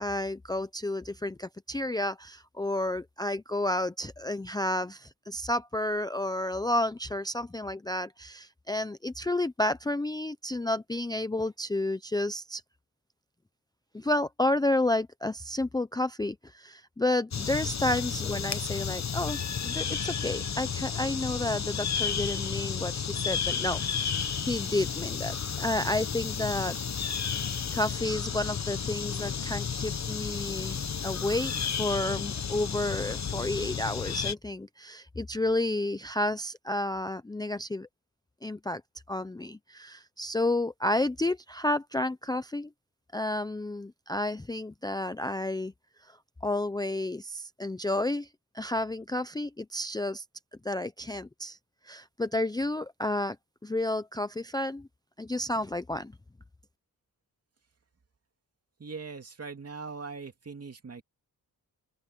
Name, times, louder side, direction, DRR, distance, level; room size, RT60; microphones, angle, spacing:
voice 1, 0.0-12.6 13.9-26.8 27.7-37.9 38.4-38.8 39.1-42.7 43.1-45.7 46.1-46.2 46.4-48.3 48.5-50.2 50.6-51.6 51.8-53.4 53.6-54.9 55.2-56.1, left 1 dB, 10° left, 0.5 m, -31 dB
sound 1, 17.3-34.3, left 7 dB, 50° left, 1.2 m, -32 dB
voice 2, 58.8-61.0, right 4 dB, 40° right, 2.6 m, -41 dB
open air
wide cardioid pair, 115°, 37 cm